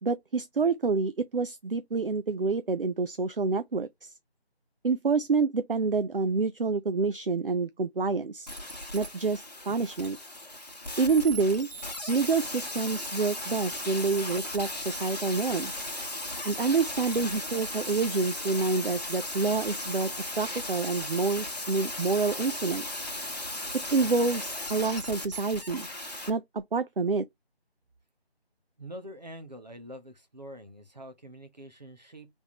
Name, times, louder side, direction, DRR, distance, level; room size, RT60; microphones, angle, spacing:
voice 1, 0.0-4.1 4.8-8.5 8.9-10.2 11.0-11.7 12.1-15.8 16.4-20.1 20.4-22.8 23.7-25.9 26.3-27.2, right 4 dB, 60° right, 0.5 m, -27 dB
sound 1, 8.5-26.3 26.6-26.7, left 1 dB, 40° left, 1.1 m, -36 dB
voice 2, 28.8-32.3, equal, 40° right, 1.0 m, -45 dB
4.0 x 3.5 x 2.9 m
figure-of-eight pair, 175°, 32 cm